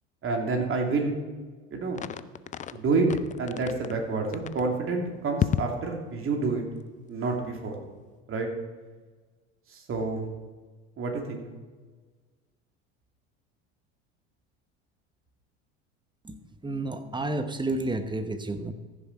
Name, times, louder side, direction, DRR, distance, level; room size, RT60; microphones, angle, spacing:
voice 1, 0.2-1.1 1.7-2.0 2.7-3.1 3.4-6.6 7.1-7.8 8.3-8.5 9.7-10.3 11.0-11.4, right 3 dB, 40° right, 1 dB, 2.8 m, -28 dB
sound 1, 2.0-2.8 3.1-3.9 4.3-4.7 5.4-5.8, left 9 dB, 25° left, 0.4 m, -31 dB
voice 2, 16.6-18.7, right 2 dB, 15° right, 9 dB, 1.0 m, -30 dB
14.5 x 6.9 x 4.6 m, 1.4 s
hypercardioid pair, 80°, 34 cm